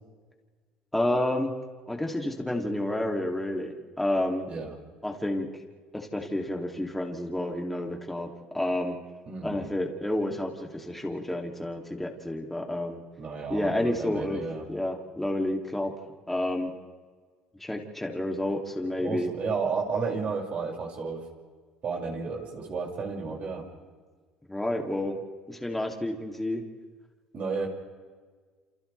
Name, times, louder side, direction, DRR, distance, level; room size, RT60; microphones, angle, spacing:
voice 1, 0.9-1.5 1.9-4.5 5.0-5.5 5.9-8.3 8.5-9.0 9.4-13.0 13.5-14.4 14.7-15.9 16.3-16.7 17.6-19.3 24.5-25.2 25.5-26.6, left 1 dB, 5° left, 1 dB, 3.0 m, -30 dB
voice 2, 9.3-9.6 13.2-14.6 19.0-21.2 21.8-23.6 27.3-27.7, right 4 dB, 45° right, -1 dB, 6.5 m, -32 dB
29.0 x 28.5 x 3.5 m, 1.5 s
cardioid pair, 105°, 3 cm